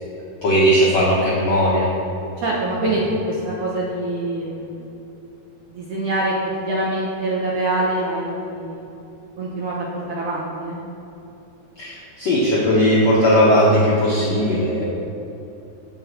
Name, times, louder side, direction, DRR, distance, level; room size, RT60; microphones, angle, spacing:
voice 1, 0.4-1.9 11.8-14.9, equal, 70° left, -6 dB, 1.6 m, -17 dB
voice 2, 2.4-4.8 5.7-6.3 6.6-8.8 9.4-10.8, right 1 dB, 70° right, -5 dB, 2.0 m, -24 dB
7.6 x 7.2 x 7.6 m, 2.9 s
omnidirectional pair, 5.0 m